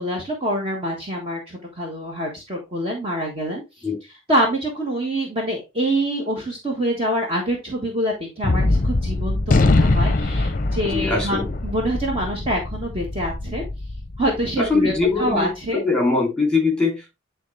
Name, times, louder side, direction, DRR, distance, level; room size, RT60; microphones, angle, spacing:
voice 1, 0.0-3.6 4.3-13.6 14.2-15.8, right 1 dB, 25° right, 1.4 m, -25 dB
Gunshot gunfire, 8.4-15.0, left 2 dB, 40° left, 0.7 m, -22 dB
voice 2, 10.8-11.5 14.6-17.1, left 3 dB, 5° left, 2.5 m, -22 dB
9.4 x 3.8 x 3.2 m
head